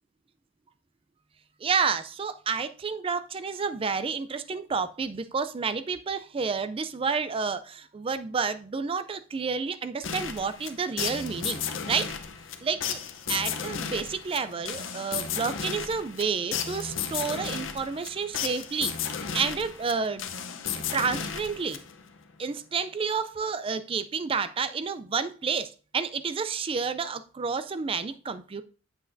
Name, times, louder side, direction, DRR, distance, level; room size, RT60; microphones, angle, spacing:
voice 1, 1.6-12.1 12.6-13.0 13.3-20.2 20.9-21.8 22.4-28.6, right 5 dB, 30° right, 0.4 m, -30 dB
sound 1, 10.0-22.2, left 7 dB, 75° left, 0.7 m, -34 dB
8.0 x 7.2 x 2.6 m
head